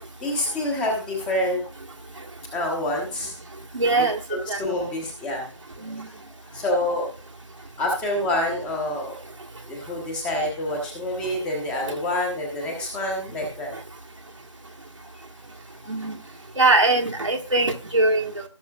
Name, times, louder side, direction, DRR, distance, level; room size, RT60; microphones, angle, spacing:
voice 1, 0.2-1.6 2.5-3.3 4.0-5.5 6.5-7.1 7.8-9.2 9.7-13.7 15.1-15.2 15.8-15.9, left 1 dB, 5° left, 1 dB, 1.0 m, -27 dB
voice 2, 3.7-4.6 5.8-6.1 11.9-12.0 15.9-16.2 16.6-18.4, right 2 dB, 75° right, 1 dB, 1.5 m, -22 dB
17.0 x 6.4 x 2.4 m, 0.37 s
figure-of-eight pair, 160°, 16 cm